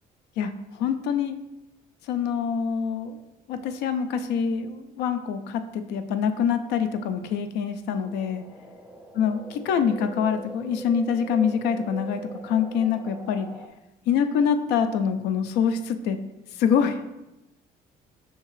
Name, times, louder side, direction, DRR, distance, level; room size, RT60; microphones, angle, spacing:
voice 1, 0.4-1.3 2.1-3.2 3.5-8.4 9.2-13.5 14.1-16.2 16.6-17.0, left 7 dB, 85° left, 9 dB, 0.4 m, -25 dB
sound 1, 8.0-13.7, right 2 dB, 5° right, 0.4 m, -41 dB
5.5 x 2.8 x 3.1 m, 0.97 s
cardioid pair, 110°, 17 cm